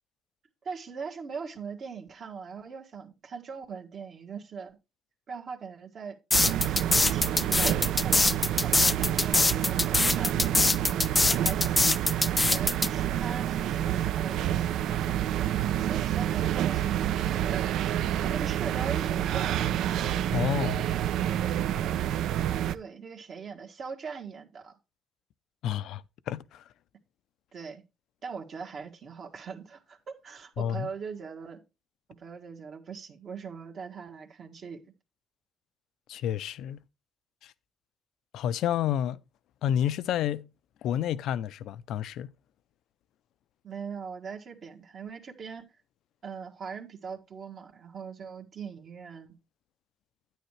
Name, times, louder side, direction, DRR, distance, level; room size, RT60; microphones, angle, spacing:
voice 1, 0.6-4.8 5.3-6.2 6.6-10.7 11.2-12.1 12.5-15.3 15.7-17.6 18.2-19.7 22.7-24.8 27.5-27.8 28.2-31.6 32.1-34.8 43.6-45.7 46.2-49.4, right 6 dB, 55° right, 1.6 m, -41 dB
sound 1, 6.3-12.9, left 3 dB, 20° left, 0.4 m, -23 dB
sound 2, 6.3-22.8, right 11 dB, 85° right, 0.5 m, -28 dB
voice 2, 20.3-20.8 25.6-26.6 30.6-30.9 36.1-36.8 37.4-37.5 38.3-39.2 39.6-40.5 40.8-42.3, left 10 dB, 85° left, 0.5 m, -30 dB
9.6 x 9.2 x 3.2 m
cardioid pair, 90°, 0 cm